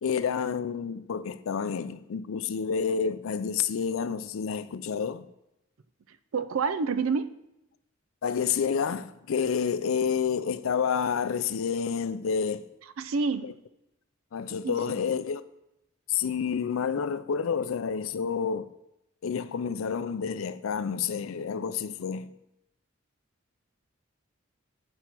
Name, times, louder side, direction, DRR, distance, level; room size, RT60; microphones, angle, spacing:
voice 1, 0.0-5.3 8.2-12.6 13.4-13.5 14.3-15.4 16.1-18.7 19.2-22.3, left 6 dB, 85° left, 0.4 m, -29 dB
voice 2, 6.3-7.4 13.0-13.5 14.6-14.8, right 5 dB, 90° right, 0.5 m, -28 dB
8.0 x 4.2 x 5.9 m
head